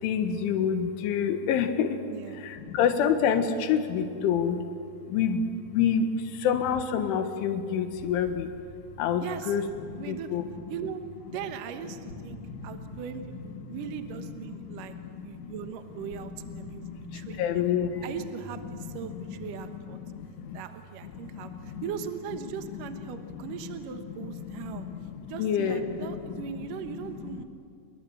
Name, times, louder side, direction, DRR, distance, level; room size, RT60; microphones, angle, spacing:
voice 1, 0.0-2.1 2.3-4.6 5.1-8.5 9.0-10.5 12.4-12.8 13.6-13.8 14.6-15.5 16.0-16.1 16.6-18.1 18.8-19.4 19.6-20.6 21.0-21.8 23.1-23.5 24.2-26.5, left 7 dB, 80° left, 8 dB, 4.0 m, -29 dB
voice 2, 2.1-2.4 9.2-9.6 9.9-10.3 10.7-11.0 11.3-17.6 18.0-20.0 20.5-24.9 25.2-27.4, right 8 dB, 70° right, 7 dB, 2.1 m, -39 dB
sound 1, 7.9-19.5, right 1 dB, 35° left, 3.5 m, -49 dB
29.5 x 22.5 x 8.1 m, 2.5 s
omnidirectional pair, 5.5 m